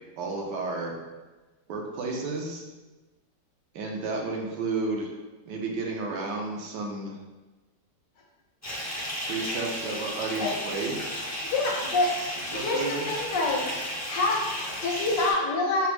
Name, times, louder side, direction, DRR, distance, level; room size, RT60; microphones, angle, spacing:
voice 1, 0.2-0.9 1.7-2.6 3.7-5.1 5.4-7.1 9.3-11.3 12.5-13.1, right 3 dB, 80° right, 0 dB, 1.3 m, -32 dB
Bathtub (filling or washing) / Fill (with liquid), 8.6-15.3, equal, 25° left, 0.4 m, -34 dB
voice 2, 11.5-12.1 12.5-13.7 14.1-15.9, left 2 dB, 80° left, -1 dB, 1.4 m, -26 dB
6.0 x 2.0 x 3.3 m, 1.2 s
omnidirectional pair, 1.9 m